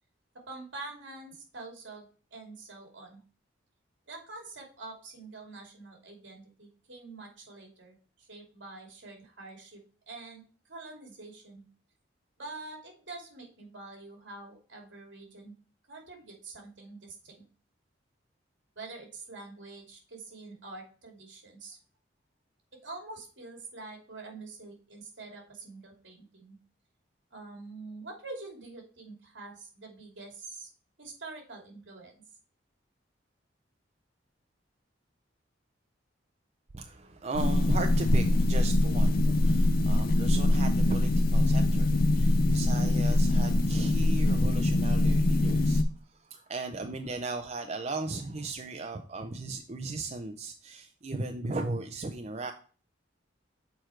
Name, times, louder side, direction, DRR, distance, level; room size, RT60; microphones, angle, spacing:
voice 1, 0.5-3.2 4.1-9.8 10.1-11.6 12.4-15.5 15.9-17.4 18.8-21.8 22.8-26.6 27.3-30.7 31.0-32.2, right 3 dB, 75° right, 2.7 m, -46 dB
voice 2, 36.7-45.9 46.1-52.5, right 2 dB, 35° right, 0.5 m, -36 dB
sound 1, 37.3-45.8, left 1 dB, 50° left, 0.6 m, -23 dB
6.9 x 4.5 x 4.5 m
head